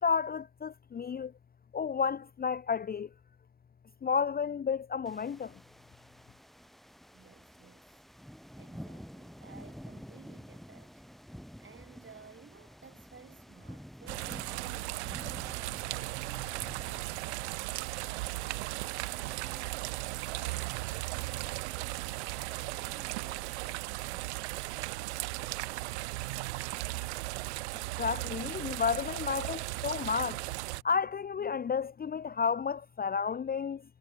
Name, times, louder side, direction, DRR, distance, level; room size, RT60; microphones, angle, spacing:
voice 1, 0.0-1.3 1.7-3.1 4.0-5.5 28.0-30.4 30.8-33.8, left 6 dB, 25° left, 0.7 m, -31 dB
sound 1, 5.1-23.6, equal, ahead, 1.8 m, -51 dB
voice 2, 7.1-8.0 8.6-11.0 11.6-15.3 15.9-20.0 20.4-22.2 22.6-26.0, right 5 dB, 35° right, 6.7 m, -55 dB
sound 2, 14.1-30.8, right 22 dB, 80° right, 0.7 m, -37 dB
sound 3, 15.4-23.4, left 27 dB, 75° left, 7.9 m, -69 dB
hypercardioid pair, 50°, 33 cm